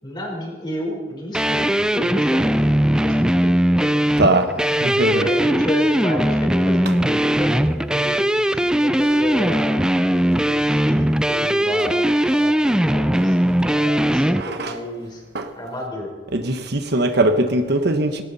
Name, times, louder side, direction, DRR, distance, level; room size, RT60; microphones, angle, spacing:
voice 1, 0.0-4.1 5.1-9.8 10.4-15.2 15.6-16.1, left 1 dB, 25° left, 4.5 m, -31 dB
sound 1, 1.3-14.4, right 1 dB, 5° right, 0.4 m, -19 dB
voice 2, 4.2-4.5 4.8-5.3 9.1-9.2 14.4-14.8 15.3-15.5 16.3-18.2, right 2 dB, 60° right, 1.2 m, -20 dB
18.5 x 18.0 x 4.2 m
head